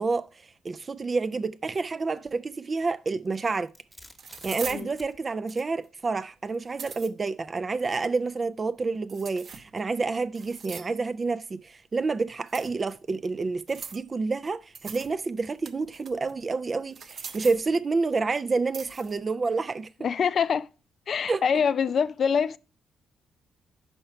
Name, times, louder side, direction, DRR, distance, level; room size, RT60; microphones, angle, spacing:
voice 1, 0.0-3.7 4.4-19.9 21.3-21.4, right 4 dB, 30° right, 0.3 m, -29 dB
Domestic sounds home sounds, 3.2-5.2, left 1 dB, 10° left, 1.1 m, -49 dB
sound 1, 3.3-3.4 4.2-4.8 5.5-5.8 6.5-7.1 9.1-9.8 10.3-11.0 12.5-12.9 13.7-14.1 14.7-15.1 15.4-16.3 16.9-17.7 18.7-19.2, right 6 dB, 55° right, 0.7 m, -41 dB
voice 2, 20.0-20.7 21.1-22.6, left 6 dB, 55° left, 0.4 m, -25 dB
5.7 x 4.5 x 5.6 m
cardioid pair, 90°, 0 cm